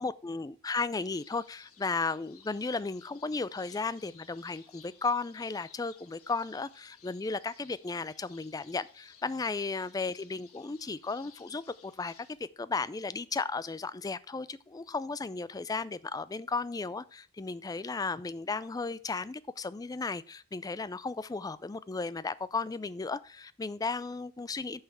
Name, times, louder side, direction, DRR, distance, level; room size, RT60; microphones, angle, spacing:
voice 1, 0.0-24.8, left 4 dB, 15° left, 0.3 m, -35 dB
sound 1, 1.0-12.3, left 7 dB, 80° left, 1.5 m, -59 dB
8.9 x 5.6 x 4.7 m
head